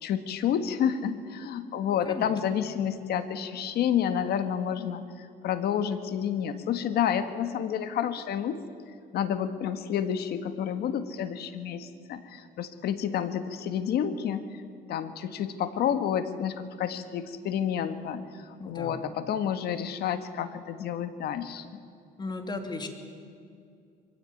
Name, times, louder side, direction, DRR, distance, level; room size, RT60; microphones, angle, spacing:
voice 1, 0.0-8.6 9.1-14.5 14.9-21.7, left 9 dB, 70° left, 10 dB, 1.6 m, -30 dB
voice 2, 18.6-19.1 22.2-22.9, left 3 dB, 25° left, 5 dB, 2.8 m, -36 dB
22.5 x 16.0 x 9.4 m, 2.3 s
cardioid pair, 110°, 17 cm